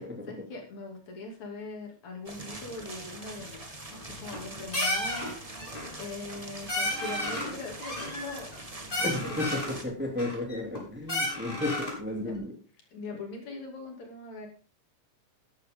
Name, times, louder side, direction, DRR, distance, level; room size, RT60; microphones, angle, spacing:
voice 1, 0.2-8.5 8.8-9.8 12.2-12.4 12.9-14.5, left 3 dB, 60° left, 1 dB, 3.9 m, -41 dB
sound 1, 2.2-9.8, right 2 dB, 30° right, 0.6 m, -43 dB
sound 2, 4.0-4.5 4.7-5.3 5.6-6.0 6.3-6.4 6.7-7.5 7.8-8.6 8.9-9.7 10.2-10.8 11.1-12.0, left 1 dB, 15° left, 4.5 m, -32 dB
voice 2, 9.0-9.5 9.8-11.7 12.0-12.5, left 2 dB, 5° right, 0 dB, 2.4 m, -33 dB
13.0 x 11.0 x 3.7 m, 0.37 s
omnidirectional pair, 3.8 m